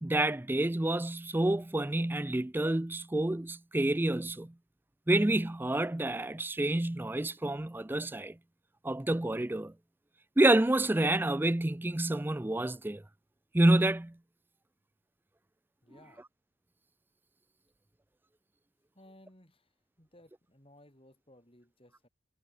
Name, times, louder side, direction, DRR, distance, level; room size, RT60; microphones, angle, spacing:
voice 1, 0.0-4.5 5.1-8.3 8.8-9.7 10.4-13.0 13.5-14.1, right 1 dB, 10° right, 0.4 m, -28 dB
voice 2, 15.8-16.2 18.9-22.1, left 1 dB, 25° left, 4.6 m, -59 dB
head